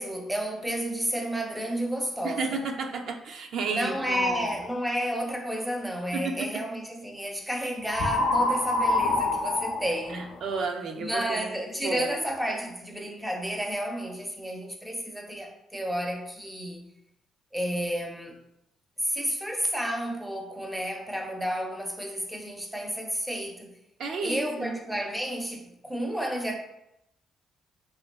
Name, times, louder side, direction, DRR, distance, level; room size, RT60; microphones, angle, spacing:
voice 1, 0.0-2.6 3.7-10.3 11.0-16.9 17.5-18.4 19.0-23.7 24.2-26.6, equal, 5° right, 2 dB, 0.5 m, -31 dB
voice 2, 2.2-4.5 6.1-6.6 10.1-12.1 24.0-24.7, right 4 dB, 70° right, 3 dB, 0.3 m, -32 dB
sound 1, 4.0-4.6 7.9-10.6, left 2 dB, 75° left, 0.4 m, -26 dB
2.7 x 2.4 x 2.2 m, 0.83 s
cardioid pair, 90°, 0 cm